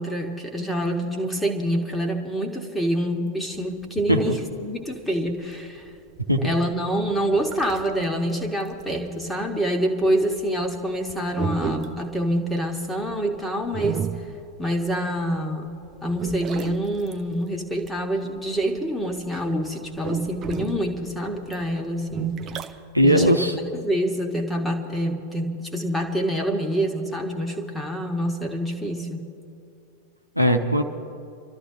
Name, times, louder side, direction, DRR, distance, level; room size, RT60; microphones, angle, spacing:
voice 1, 0.0-5.8 6.4-14.0 14.6-15.7 16.0-22.4 23.0-29.2, equal, 5° left, 3 dB, 1.6 m, -26 dB
sound 1, 3.5-8.1 8.4-15.3 15.7-19.2 19.5-22.7, right 8 dB, 30° right, 0.7 m, -33 dB
voice 2, 22.9-23.6 30.4-30.8, equal, 90° right, 4 dB, 0.8 m, -18 dB
30.0 x 13.0 x 2.8 m, 2.5 s
figure-of-eight pair, 90°, 0 cm